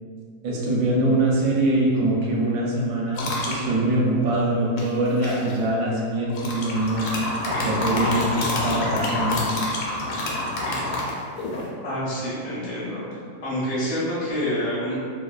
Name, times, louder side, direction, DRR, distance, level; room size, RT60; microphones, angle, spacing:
voice 1, 0.4-7.1 7.4-9.4, right 1 dB, 75° right, -4 dB, 1.0 m, -23 dB
sound 1, 3.1-3.6 4.8-5.5 6.3-11.7, left 2 dB, 85° left, 1.1 m, -27 dB
voice 2, 11.8-15.0, equal, 55° left, -8 dB, 0.4 m, -27 dB
2.7 x 2.2 x 2.3 m, 2.2 s
omnidirectional pair, 1.6 m